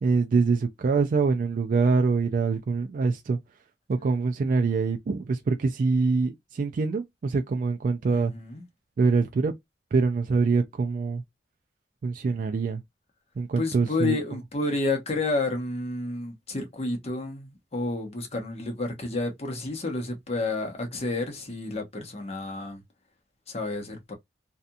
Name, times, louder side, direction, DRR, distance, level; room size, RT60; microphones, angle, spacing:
voice 1, 0.0-3.4 3.9-8.3 9.0-9.5 9.9-11.2 12.0-12.8 13.4-14.2, right 4 dB, 50° right, 0.3 m, -24 dB
voice 2, 8.1-8.6 13.6-22.8 23.5-24.1, left 2 dB, 35° left, 0.9 m, -30 dB
2.7 x 2.4 x 2.3 m
head